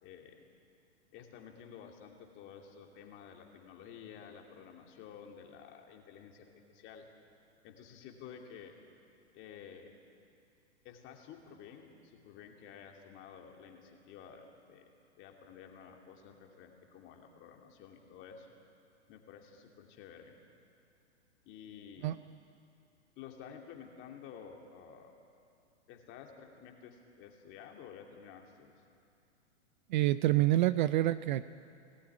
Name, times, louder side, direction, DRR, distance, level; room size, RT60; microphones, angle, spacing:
voice 1, 0.0-0.5 1.1-7.1 7.6-8.8 9.3-10.0 10.8-14.9 15.2-18.5 19.1-20.4 21.4-22.1 23.2-25.2 25.9-28.8, left 7 dB, 35° left, 2 dB, 2.7 m, -52 dB
voice 2, 29.9-31.5, right 15 dB, 45° right, 15 dB, 0.5 m, -27 dB
19.0 x 14.0 x 9.8 m, 2.7 s
hypercardioid pair, 120°, 35 cm